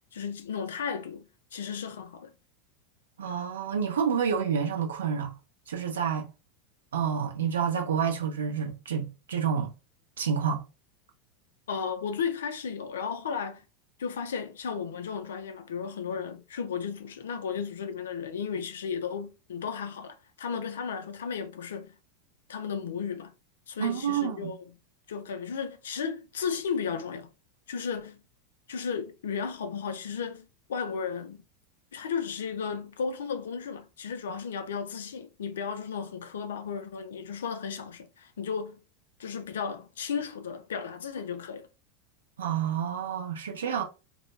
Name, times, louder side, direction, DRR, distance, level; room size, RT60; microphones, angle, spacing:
voice 1, 0.1-1.2 1.5-2.3 11.7-13.6 14.0-21.9 22.5-23.3 23.7-24.6 25.1-27.3 27.7-28.2 28.7-31.4 31.9-38.8 39.2-41.7, left 6 dB, 70° left, 0.4 m, -34 dB
voice 2, 3.2-5.3 5.7-6.3 6.9-9.7 10.2-10.6 23.8-24.5 42.4-43.8, right 7 dB, 70° right, 0.5 m, -29 dB
2.2 x 2.1 x 3.1 m
figure-of-eight pair, 85°, 0 cm